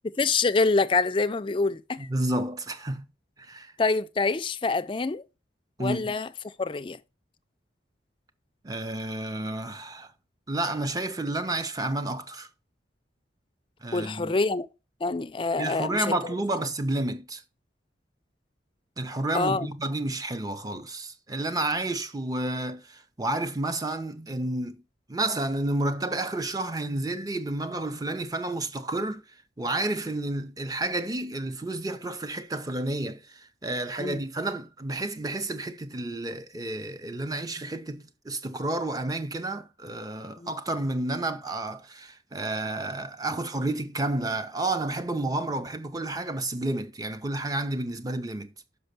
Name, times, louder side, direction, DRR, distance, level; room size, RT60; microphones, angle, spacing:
voice 1, 0.2-2.1 3.8-5.2 5.8-6.3 6.6-7.0 13.9-14.7 15.0-16.1 19.3-19.7 34.0-34.2 40.4-40.5, left 3 dB, 25° left, 0.4 m, -26 dB
voice 2, 2.0-3.0 3.4-3.7 5.8-6.1 8.6-10.1 10.5-12.5 13.8-14.3 15.6-17.4 19.0-24.8 25.1-29.2 29.6-48.5, right 2 dB, 20° right, 0.6 m, -30 dB
5.9 x 5.5 x 6.6 m
head